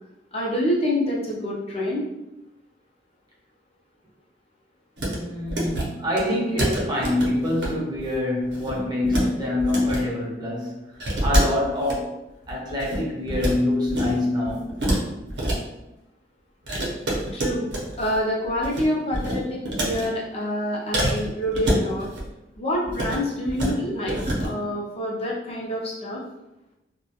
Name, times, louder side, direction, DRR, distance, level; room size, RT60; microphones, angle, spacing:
voice 1, 0.3-2.1 17.3-17.7 18.0-22.1 22.6-26.2, left 1 dB, 35° left, 0.5 m, -27 dB
sound 1, 5.0-5.2 5.4-5.8 6.2-6.3 6.6-7.7 8.0-8.1 8.5-9.3 9.6-10.0 11.0-11.9 12.4-13.5 13.8-14.2 14.4-15.6 16.7-18.2 18.4-18.8 19.1-20.1 20.9-22.3 22.8-23.2 23.5-23.7 24.0-24.5, right 1 dB, 75° right, 0.7 m, -26 dB
voice 2, 5.2-12.2 12.5-14.7, left 1 dB, 25° right, 0.6 m, -25 dB
2.2 x 2.1 x 2.8 m
head